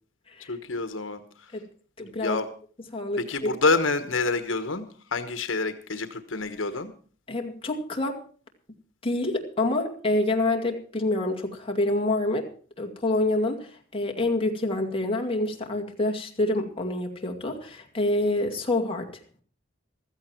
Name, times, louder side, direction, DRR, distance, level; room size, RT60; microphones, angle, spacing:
voice 1, 0.5-1.5 2.2-2.5 3.2-4.8 5.1-6.9, left 3 dB, 85° left, 10 dB, 1.2 m, -27 dB
voice 2, 2.0-2.4 2.9-3.5 7.3-8.2 9.0-12.5 12.8-19.2, left 2 dB, 30° left, 2 dB, 2.3 m, -27 dB
15.5 x 14.0 x 4.5 m, 0.43 s
head